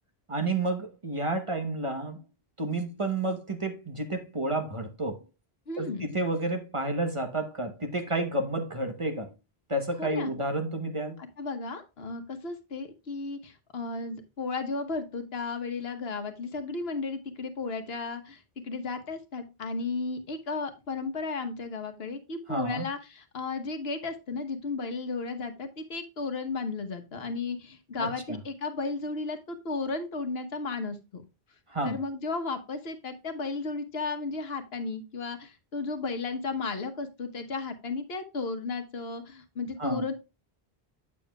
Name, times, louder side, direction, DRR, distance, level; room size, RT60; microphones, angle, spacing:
voice 1, 0.3-2.2 2.6-5.2 5.8-9.3 9.7-11.2 22.5-22.8 28.0-28.4 31.7-32.0 39.8-40.1, right 2 dB, 30° right, 1.1 m, -30 dB
voice 2, 5.7-6.1 10.0-10.3 11.4-31.2 31.8-40.1, left 4 dB, 70° left, 1.3 m, -34 dB
8.2 x 7.0 x 2.3 m
omnidirectional pair, 1.1 m